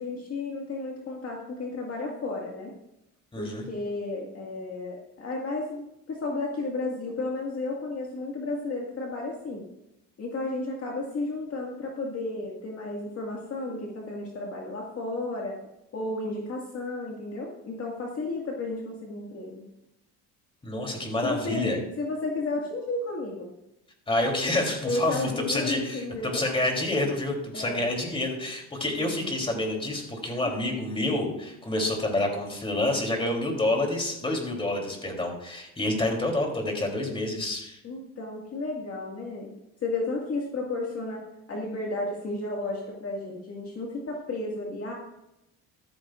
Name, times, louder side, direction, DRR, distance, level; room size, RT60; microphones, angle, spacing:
voice 1, 0.0-2.7 3.4-9.7 10.2-15.6 15.9-19.7 21.2-21.7 22.0-23.5 24.8-26.4 27.5-27.9 29.0-29.4 30.4-30.5 37.8-39.5 39.8-41.2 41.5-44.9, left 2 dB, 45° left, -1 dB, 2.0 m, -33 dB
voice 2, 3.3-3.6 20.6-21.8 24.1-37.8, left 1 dB, 15° left, 1 dB, 3.3 m, -28 dB
14.0 x 13.5 x 2.5 m, 0.86 s
cardioid pair, 120°, 34 cm